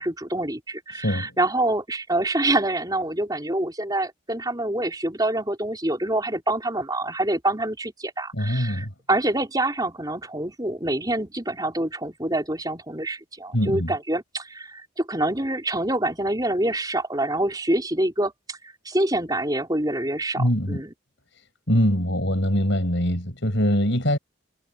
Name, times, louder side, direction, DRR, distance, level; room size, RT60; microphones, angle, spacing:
voice 1, 0.0-18.6 18.8-20.9, right 1 dB, 20° right, 4.5 m, -26 dB
voice 2, 0.9-1.3 8.3-8.9 13.5-13.9 20.4-20.8 21.7-24.2, equal, 60° left, 7.5 m, -23 dB
head